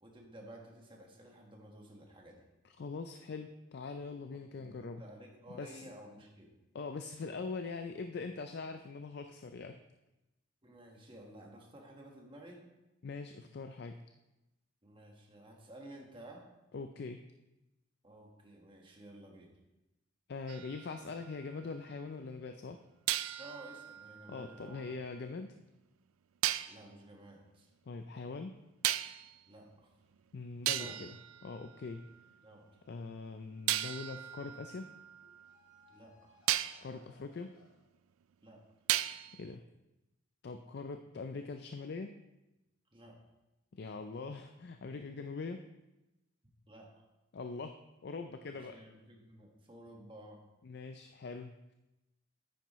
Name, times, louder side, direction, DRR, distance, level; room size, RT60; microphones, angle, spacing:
voice 1, 0.0-2.4 4.3-6.6 10.6-12.6 14.8-16.4 18.0-19.6 23.4-24.9 26.7-27.7 29.5-29.9 30.7-31.0 32.4-32.8 35.9-36.4 38.4-38.6 42.9-43.2 46.7-46.9 48.5-50.4, right 1 dB, 25° right, 0 dB, 1.4 m, -53 dB
voice 2, 2.6-5.0 5.5-5.8 6.7-9.8 13.0-14.0 16.7-17.2 20.3-22.8 24.3-25.6 27.9-28.6 30.3-31.2 31.4-32.1 32.9-34.9 36.8-37.5 39.3-39.6 40.4-42.2 43.7-45.6 47.3-48.8 50.6-51.7, left 4 dB, 50° left, 7 dB, 0.4 m, -42 dB
sound 1, 20.5-21.9 23.1-25.2 26.4-26.8 28.8-29.4 30.2-30.3 30.7-32.3 33.7-35.8 36.5-36.9 38.9-39.5, right 14 dB, 85° right, 0.3 m, -37 dB
sound 2, 33.2-34.2 35.2-37.8, left 4 dB, 75° left, 1.9 m, -67 dB
9.5 x 9.1 x 3.1 m, 0.98 s
head